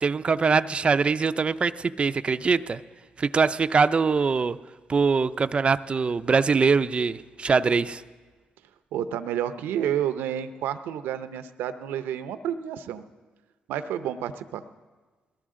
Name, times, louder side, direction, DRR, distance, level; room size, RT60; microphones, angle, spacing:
voice 1, 0.0-2.8 3.2-4.6 4.9-8.0, right 5 dB, 35° right, 10 dB, 0.5 m, -23 dB
voice 2, 8.9-13.0 13.7-14.6, right 10 dB, 85° right, 11 dB, 0.6 m, -30 dB
21.0 x 14.0 x 3.7 m, 1.4 s
supercardioid pair, 70°, 3 cm